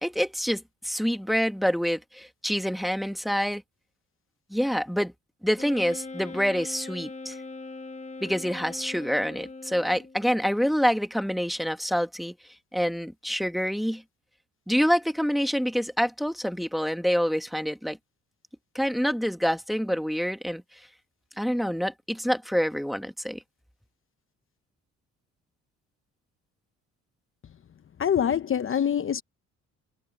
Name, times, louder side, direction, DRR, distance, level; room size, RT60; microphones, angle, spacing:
voice 1, 0.0-3.6 4.5-5.1 5.4-7.4 8.2-12.4 12.7-14.0 14.7-18.0 18.8-20.6 21.4-23.4, equal, ahead, 1.7 m, -26 dB
Wind instrument woodwind instrument, 5.6-10.2, left 3 dB, 25° left, 1.3 m, -40 dB
voice 2, 28.0-29.2, left 8 dB, 45° left, 0.9 m, -24 dB
cardioid pair, 90°, 30 cm